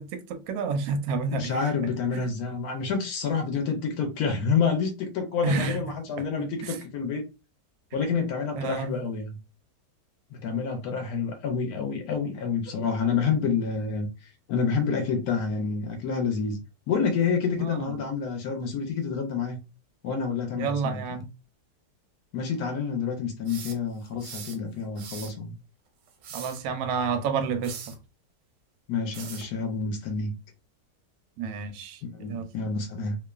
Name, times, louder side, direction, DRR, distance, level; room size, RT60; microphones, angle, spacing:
voice 1, 0.0-1.6 2.1-2.3 5.4-5.8 6.2-6.3 6.6-6.7 8.6-9.0 17.6-17.8 20.5-21.3 26.3-27.7 31.4-32.0 32.3-32.4, right 5 dB, 70° right, 0.9 m, -29 dB
voice 2, 1.3-7.2 7.9-9.4 10.3-14.1 14.5-16.6 16.9-19.6 20.0-21.0 22.3-25.5 28.9-30.3 32.0-33.2, left 5 dB, 70° left, 1.0 m, -28 dB
sound 1, 23.5-24.6 25.0-25.4 26.1-26.6 27.6-28.0 29.1-29.5, right 6 dB, 90° right, 1.3 m, -41 dB
3.0 x 2.0 x 2.3 m
omnidirectional pair, 1.9 m